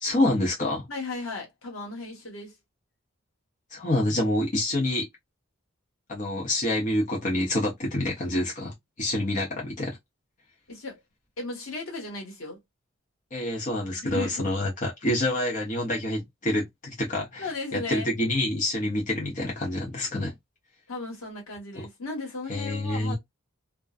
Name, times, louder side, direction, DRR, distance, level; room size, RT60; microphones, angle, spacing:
voice 1, 0.0-0.9 3.7-5.1 6.1-10.0 13.3-20.3 22.5-23.1, left 1 dB, 35° left, 0.6 m, -27 dB
voice 2, 0.9-2.5 10.7-10.9 11.4-12.6 14.0-14.5 17.4-18.1 20.9-23.2, left 3 dB, 90° left, 1.3 m, -35 dB
2.4 x 2.1 x 2.4 m
head